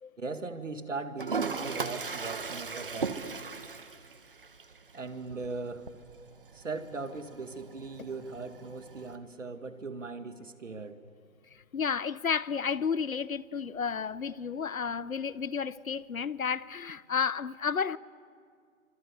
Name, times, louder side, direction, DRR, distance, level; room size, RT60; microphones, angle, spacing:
voice 1, 0.2-3.2 4.9-5.9 6.5-11.0, right 3 dB, 60° right, 2.1 m, -39 dB
Toilet flush, 1.2-9.2, right 4 dB, 40° right, 1.4 m, -38 dB
voice 2, 11.7-18.0, left 6 dB, 75° left, 0.9 m, -32 dB
28.0 x 25.5 x 8.2 m
figure-of-eight pair, 165°, 42 cm